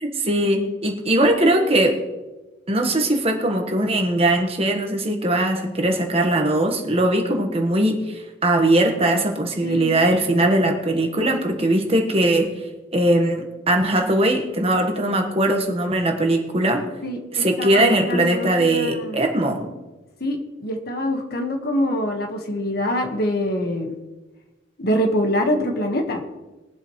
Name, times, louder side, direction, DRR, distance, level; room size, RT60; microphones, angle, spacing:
voice 1, 0.0-2.0 2.7-12.5 12.9-16.8 17.3-19.7, right 1 dB, 30° right, 3 dB, 1.4 m, -20 dB
voice 2, 9.6-9.9 17.0-19.2 20.2-23.9 24.8-26.2, equal, 50° left, 4 dB, 1.5 m, -25 dB
21.5 x 7.8 x 3.2 m, 1.1 s
head